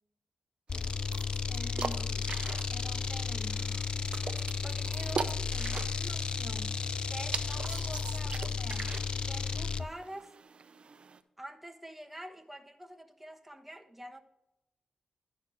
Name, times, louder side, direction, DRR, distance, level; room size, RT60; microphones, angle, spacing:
sound 1, 0.7-9.9, left 5 dB, 45° left, 0.3 m, -33 dB
sound 2, 0.7-11.2, right 5 dB, 55° right, 0.6 m, -42 dB
voice 1, 1.5-2.3 2.7-3.8 4.6-6.8 7.1-8.9 9.2-10.3 11.4-14.2, right 1 dB, 10° right, 5 dB, 1.2 m, -47 dB
11.5 x 4.8 x 4.6 m, 0.90 s
cardioid pair, 55°, 2 cm